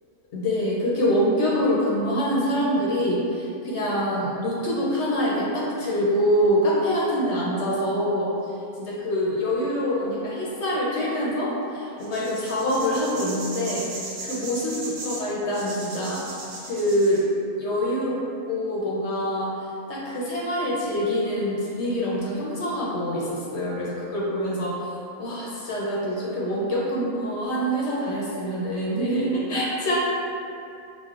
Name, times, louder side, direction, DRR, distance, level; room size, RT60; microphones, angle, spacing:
voice 1, 0.3-8.3 8.8-13.9 14.2-16.3 16.7-17.2 17.6-18.2 18.5-19.5 19.9-24.9 25.2-30.0, equal, 60° left, -5 dB, 0.8 m, -25 dB
sound 1, 12.0-17.2, right 2 dB, 85° right, 1.3 m, -37 dB
5.2 x 2.1 x 2.3 m, 2.6 s
omnidirectional pair, 1.5 m